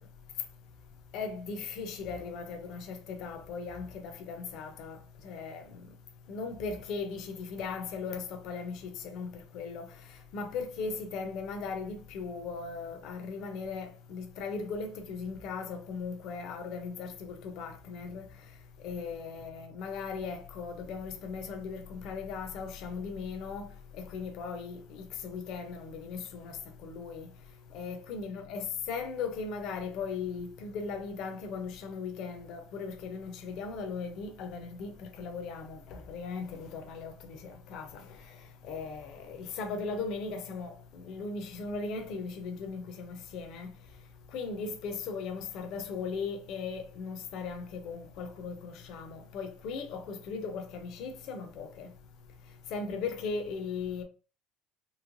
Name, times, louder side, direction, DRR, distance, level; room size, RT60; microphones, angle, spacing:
voice 1, 1.1-5.0 5.2-5.6 6.3-9.9 10.3-18.3 18.8-23.7 24.0-26.6 26.8-27.3 27.7-38.0 38.6-43.7 44.3-51.9 52.7-54.0, left 5 dB, 50° left, 0.6 m, -38 dB
3.1 x 3.0 x 2.5 m
cardioid pair, 165°, 0 cm